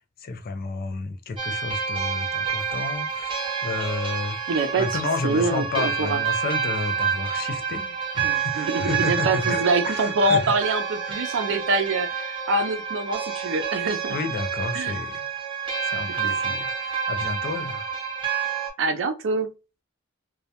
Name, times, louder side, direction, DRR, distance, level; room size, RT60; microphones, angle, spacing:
voice 1, 0.0-4.4 4.8-7.9 8.1-10.5 11.1-11.3 14.1-15.2 15.8-18.0, left 4 dB, 45° left, 0.4 m, -31 dB
sound 1, 1.4-18.7, right 7 dB, 25° right, 0.7 m, -28 dB
voice 2, 4.5-4.9 5.2-6.2 8.2-14.2 14.7-14.9 18.8-19.5, right 2 dB, 65° right, 0.4 m, -25 dB
2.3 x 2.1 x 2.7 m
head